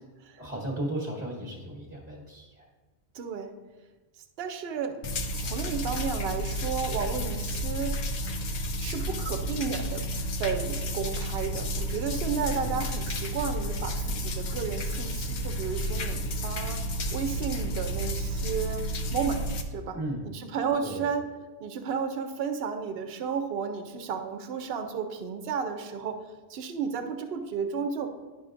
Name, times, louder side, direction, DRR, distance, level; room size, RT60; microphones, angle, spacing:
voice 1, 0.4-2.7 12.6-12.9 19.9-20.3 20.8-21.1, right 1 dB, 15° right, -7 dB, 1.1 m, -35 dB
voice 2, 3.1-3.5 4.4-5.0 5.4-8.4 8.8-10.1 10.4-16.8 17.1-18.9 19.1-20.0 20.2-21.3 21.6-26.2 26.5-28.1, right 6 dB, 65° right, 6 dB, 0.9 m, -33 dB
sound 1, 5.0-19.6, equal, 55° left, 0.6 m, -31 dB
10.5 x 5.5 x 2.5 m, 1.3 s
omnidirectional pair, 1.1 m